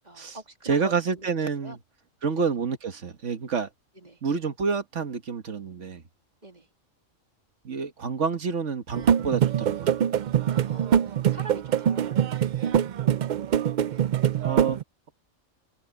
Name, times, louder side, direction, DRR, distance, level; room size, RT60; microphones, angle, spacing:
voice 1, 0.0-1.8 2.3-2.5 3.9-4.2 6.4-6.7 10.5-12.8 13.9-14.0 14.3-14.6, right 2 dB, 30° right, 2.6 m, -45 dB
voice 2, 0.6-1.8 2.2-3.7 4.2-6.0 7.6-9.9 14.4-14.8, right 5 dB, 65° right, 1.6 m, -28 dB
sound 1, 8.9-14.8, right 9 dB, 80° right, 0.4 m, -24 dB
omnidirectional pair, 1.4 m